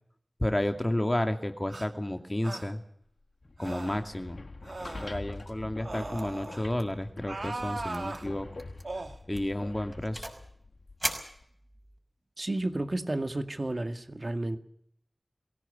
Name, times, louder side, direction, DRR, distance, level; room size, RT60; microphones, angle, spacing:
voice 1, 0.4-2.8 3.6-4.4 5.0-8.5 9.3-10.3, left 1 dB, 25° left, 7 dB, 2.4 m, -31 dB
sound 1, 1.7-1.9 2.4-2.7 3.6-4.0 4.6-5.2 5.8-6.7 7.2-8.3 8.8-9.2, right 2 dB, 75° right, 1.9 m, -38 dB
sound 2, 3.4-11.4, left 2 dB, 85° left, 1.7 m, -45 dB
sound 3, 6.2-6.5 6.8-7.0 7.3-7.4 7.9-8.2 8.6-8.8 9.3-10.5 11.0-12.0, right 1 dB, 15° right, 5.9 m, -38 dB
voice 2, 12.4-14.6, right 2 dB, 50° right, 8 dB, 2.0 m, -32 dB
21.0 x 17.0 x 8.4 m, 0.69 s
wide cardioid pair, 45°, 0 cm